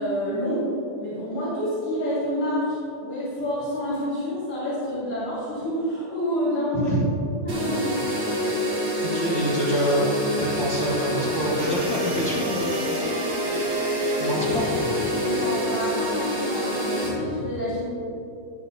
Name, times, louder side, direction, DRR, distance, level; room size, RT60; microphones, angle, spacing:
voice 1, 0.0-2.7 3.0-7.0 7.4-8.0 15.1-17.9, equal, 45° left, -13 dB, 2.9 m, -28 dB
voice 2, 6.7-7.0 9.0-10.0 10.4-12.8 14.2-15.0, equal, 60° left, -7 dB, 1.1 m, -26 dB
sound 1, 7.5-17.1, equal, 60° right, 3.8 m, -27 dB
11.0 x 9.5 x 2.8 m, 2.8 s
omnidirectional pair, 3.9 m